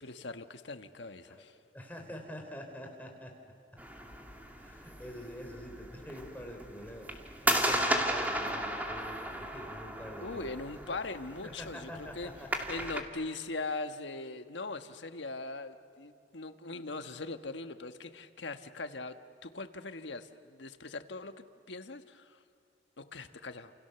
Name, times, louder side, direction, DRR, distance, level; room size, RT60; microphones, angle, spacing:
voice 1, 0.0-1.5 10.2-12.3 12.7-19.2 19.4-22.4 23.0-23.7, left 3 dB, 85° left, 8 dB, 1.4 m, -41 dB
voice 2, 1.7-3.3 4.6-7.1 7.4-10.5 11.4-12.8 23.2-23.3, equal, 10° left, 2 dB, 3.9 m, -45 dB
sound 1, 3.8-13.0, right 1 dB, 10° right, 2.3 m, -35 dB
30.0 x 28.5 x 7.0 m, 2.4 s
head